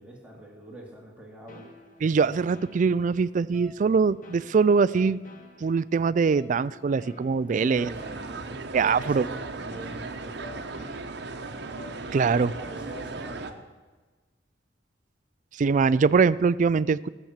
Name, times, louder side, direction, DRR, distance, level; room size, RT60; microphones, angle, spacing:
voice 1, 0.0-1.6 7.5-10.9 12.6-13.6, right 1 dB, 5° right, -2 dB, 2.4 m, -44 dB
sound 1, 1.5-12.4, left 1 dB, 50° left, 1.5 m, -50 dB
voice 2, 2.0-5.2 5.6-7.9 8.7-9.3 12.1-12.5 15.6-17.1, right 5 dB, 45° right, 18 dB, 0.3 m, -22 dB
sound 2, 7.7-13.5, right 3 dB, 65° right, 1.0 m, -37 dB
15.0 x 7.2 x 7.3 m, 1.3 s
head